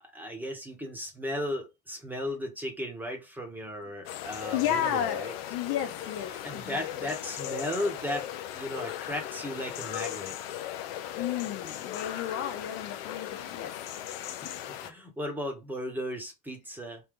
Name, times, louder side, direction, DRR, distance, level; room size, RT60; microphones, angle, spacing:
voice 1, 0.0-5.3 6.4-8.3 8.5-10.4 14.2-17.0, left 1 dB, 5° right, 1.1 m, -36 dB
sound 1, 4.0-14.9, left 11 dB, 75° left, 0.7 m, -37 dB
voice 2, 4.5-5.2 5.5-6.8 11.1-13.8 14.4-14.6, left 10 dB, 55° left, 1.0 m, -32 dB
3.4 x 2.8 x 3.7 m
supercardioid pair, 105°, 29 cm